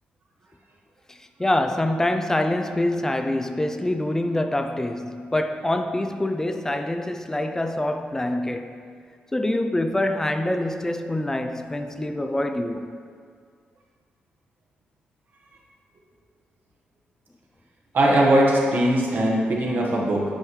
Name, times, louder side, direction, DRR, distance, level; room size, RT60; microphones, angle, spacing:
voice 1, 1.1-8.8 9.3-12.9, left 1 dB, 15° left, 0.4 m, -25 dB
voice 2, 17.9-20.2, right 1 dB, 60° right, 1.3 m, -20 dB
9.0 x 5.3 x 3.2 m
cardioid pair, 100°, 4 cm